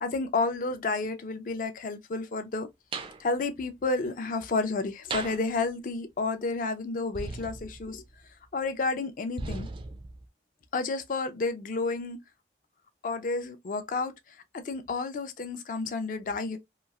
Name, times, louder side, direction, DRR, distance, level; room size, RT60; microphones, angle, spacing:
voice 1, 0.0-2.7 3.2-8.0 8.5-9.7 10.7-12.2 13.0-14.1 14.5-16.6, left 3 dB, 50° left, 0.4 m, -31 dB
sound 1, 2.9-3.2 5.1-5.5 7.1-8.2 9.4-10.3, right 3 dB, 30° right, 0.3 m, -37 dB
2.9 x 2.3 x 2.3 m
head